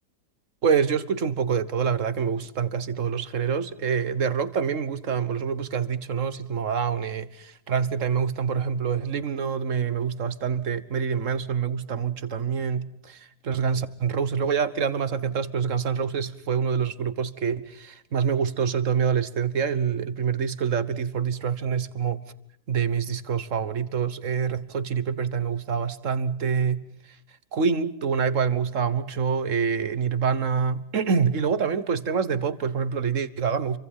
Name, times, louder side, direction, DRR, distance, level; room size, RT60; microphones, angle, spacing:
voice 1, 0.6-22.3 22.7-26.8 27.5-33.8, right 6 dB, 50° right, 15 dB, 1.5 m, -26 dB
28.5 x 24.0 x 5.6 m, 0.66 s
omnidirectional pair, 1.8 m